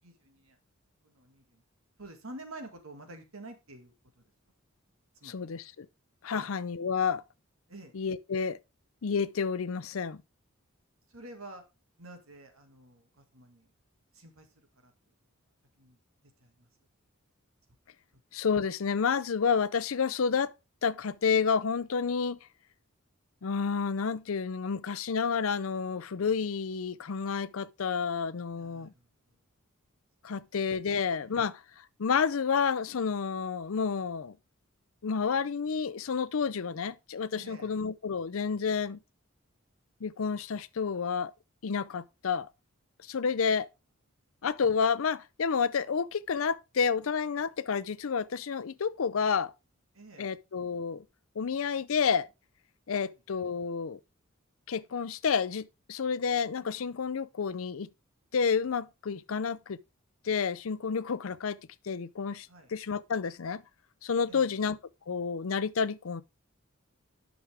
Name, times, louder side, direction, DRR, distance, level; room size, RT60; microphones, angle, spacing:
voice 1, 0.0-0.6 1.0-1.6 2.0-4.3 5.1-5.4 6.3-6.5 7.7-7.9 11.1-11.6 12.0-13.7 14.1-14.9 15.8-16.0 16.4-16.7 28.5-29.4 30.2-30.5 31.0-31.5 37.3-37.8 49.9-50.4 53.0-53.2 62.5-62.7 64.3-64.6, right 2 dB, 75° right, 2.1 m, -49 dB
voice 2, 5.2-5.9 6.2-7.2 7.9-8.6 9.0-10.2 18.3-20.5 20.8-22.4 23.4-28.9 30.2-31.6 32.0-34.4 35.0-39.0 40.0-41.3 41.6-42.5 43.1-43.7 44.4-49.5 50.2-51.0 51.4-52.3 52.9-54.0 54.7-57.9 58.3-59.8 60.2-61.6 61.9-63.6 64.0-64.8 65.1-66.2, left 6 dB, 75° left, 0.5 m, -30 dB
11.0 x 6.1 x 3.5 m
head